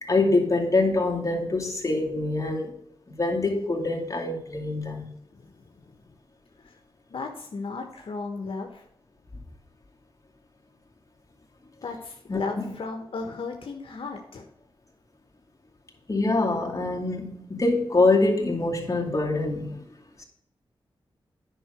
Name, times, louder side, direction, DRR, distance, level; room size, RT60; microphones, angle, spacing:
voice 1, 0.0-2.7 3.1-5.1 12.3-12.6 16.1-19.8 20.2-20.3, left 2 dB, 35° left, -1 dB, 2.3 m, -25 dB
voice 2, 7.1-8.8 11.8-14.4, left 4 dB, 75° left, 3 dB, 1.3 m, -34 dB
9.7 x 5.7 x 5.0 m, 0.72 s
wide cardioid pair, 80°, 9 cm